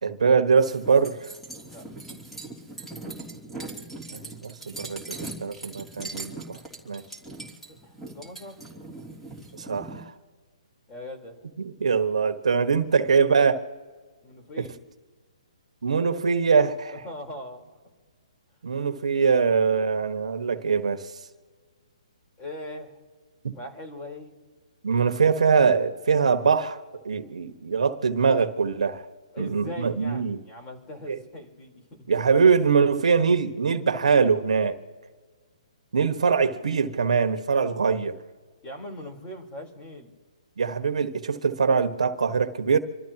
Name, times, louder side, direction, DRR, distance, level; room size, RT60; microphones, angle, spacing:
voice 1, 0.0-1.3 4.1-6.6 6.9-7.0 9.5-10.0 11.6-13.6 14.6-14.7 15.8-16.9 18.6-21.1 23.4-23.5 24.8-26.8 27.0-29.0 29.4-30.4 31.1-31.2 32.1-34.8 35.9-38.2 40.6-42.8, right 5 dB, 75° right, 8 dB, 1.4 m, -23 dB
sound 1, 0.6-10.0, right 2 dB, 5° left, 3.1 m, -40 dB
voice 2, 7.7-8.6 10.9-11.4 14.2-14.8 17.0-17.8 22.4-23.0 23.5-24.3 25.0-25.1 29.3-32.1 38.6-40.1, left 1 dB, 20° left, 2 dB, 3.9 m, -40 dB
27.0 x 13.5 x 3.0 m, 1.5 s
hypercardioid pair, 145°, 4 cm